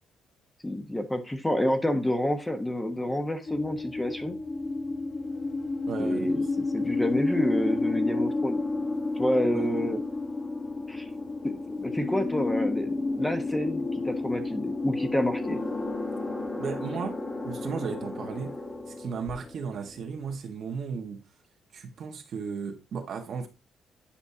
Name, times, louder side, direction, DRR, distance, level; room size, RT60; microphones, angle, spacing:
voice 1, 0.6-4.4 6.0-6.4 6.7-8.6 9.2-10.0 10.9-11.1 11.4-11.5 11.8-15.6, left 1 dB, 10° left, 1.2 m, -28 dB
sound 1, 3.4-20.3, left 3 dB, 35° left, 2.1 m, -31 dB
voice 2, 5.9-6.4 9.5-9.7 16.6-17.2 17.4-18.6 18.9-21.2 21.7-23.5, right 6 dB, 60° right, 1.4 m, -35 dB
10.0 x 5.2 x 2.8 m
cardioid pair, 90°, 0 cm